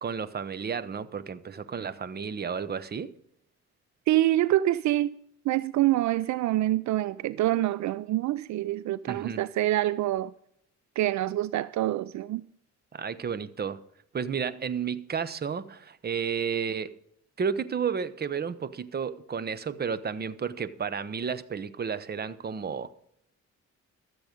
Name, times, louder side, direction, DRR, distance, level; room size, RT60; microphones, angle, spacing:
voice 1, 0.0-3.1 9.1-9.4 12.9-13.8 14.1-16.9 17.4-22.9, right 6 dB, 35° right, 0.8 m, -32 dB
voice 2, 4.1-5.2 5.4-10.3 11.0-12.4, right 14 dB, 70° right, 0.4 m, -26 dB
13.0 x 7.9 x 5.1 m
cardioid pair, 90°, 30 cm